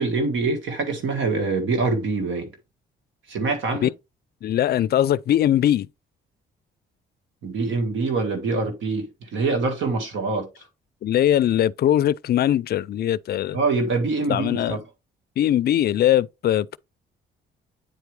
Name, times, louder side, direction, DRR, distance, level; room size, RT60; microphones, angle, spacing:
voice 1, 0.0-2.5 3.3-3.9 7.4-10.5 13.5-14.8, right 3 dB, 75° right, 1.8 m, -24 dB
voice 2, 4.4-5.9 11.0-13.6 14.3-14.8 15.4-16.8, left 11 dB, 55° left, 0.4 m, -21 dB
8.9 x 4.5 x 3.2 m
cardioid pair, 90°, 20 cm